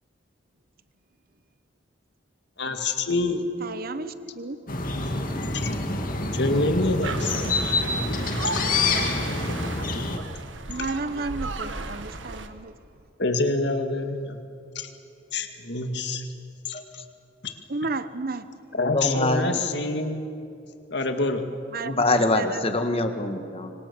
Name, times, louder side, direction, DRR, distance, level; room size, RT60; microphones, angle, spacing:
voice 1, 2.6-3.4 5.5-5.7 6.3-7.3 8.5-8.6 13.2-14.4 14.8-14.9 15.3-16.3 16.7-16.8 17.4-17.5 18.7-20.2 20.9-21.4, left 2 dB, 60° left, 2.1 m, -26 dB
voice 2, 3.6-4.6 10.7-12.7 17.7-18.5 19.5-19.6 21.7-22.6, right 3 dB, 50° right, 1.0 m, -32 dB
sound 1, 4.7-10.2, left 3 dB, 45° left, 2.1 m, -27 dB
sound 2, 7.0-12.5, right 3 dB, 80° right, 1.6 m, -35 dB
voice 3, 18.8-19.4 21.8-23.7, left 2 dB, 30° left, 1.6 m, -24 dB
25.5 x 25.5 x 6.9 m
head